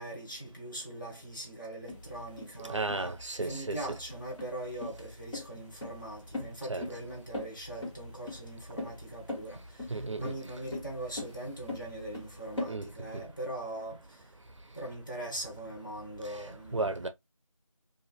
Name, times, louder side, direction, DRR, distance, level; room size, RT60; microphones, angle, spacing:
voice 1, 0.0-3.2 3.4-9.6 10.2-14.0 14.7-17.0, right 1 dB, 35° left, 1.1 m, -41 dB
sound 1, 1.9-12.7, left 2 dB, 55° left, 1.5 m, -41 dB
voice 2, 2.7-3.8 6.7-6.8 9.9-10.4 12.7-12.9 16.7-17.1, right 3 dB, 60° right, 0.5 m, -33 dB
2.7 x 2.5 x 2.3 m
figure-of-eight pair, 175°, 18 cm